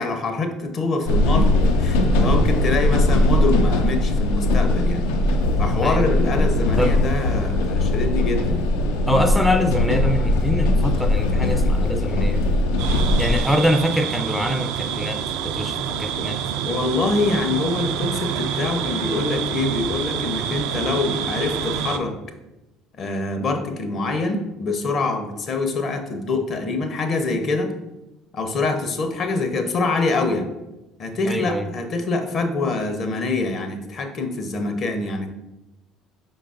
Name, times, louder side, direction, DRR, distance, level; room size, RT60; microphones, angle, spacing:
voice 1, 0.0-5.1 5.6-8.7 16.6-22.2 23.0-27.7 28.3-30.5 31.0-35.3, left 3 dB, 50° left, 6 dB, 0.7 m, -25 dB
sound 1, 1.1-13.4, left 1 dB, 80° left, 0.4 m, -20 dB
voice 2, 9.1-12.5 13.2-16.4 31.3-31.7, equal, 5° left, 6 dB, 0.4 m, -24 dB
sound 2, 12.8-22.0, right 8 dB, 75° right, 0.3 m, -27 dB
5.2 x 3.9 x 2.5 m, 0.98 s
hypercardioid pair, 65°, 0 cm